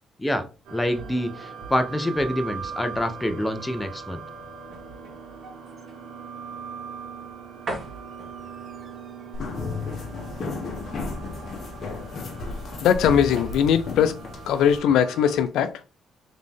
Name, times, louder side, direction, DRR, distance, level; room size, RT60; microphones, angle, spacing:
voice 1, 0.2-4.2, left 1 dB, 10° left, 0.8 m, -26 dB
sound 1, 0.6-14.9 15.3-15.5, right 2 dB, 50° right, 1.9 m, -44 dB
sound 2, 0.6-15.5, right 6 dB, 90° right, 1.4 m, -41 dB
sound 3, 9.3-14.8, left 3 dB, 55° left, 1.1 m, -33 dB
voice 2, 12.8-14.2 14.5-15.7, left 8 dB, 85° left, 0.4 m, -20 dB
3.9 x 3.6 x 3.7 m
cardioid pair, 90°, 0 cm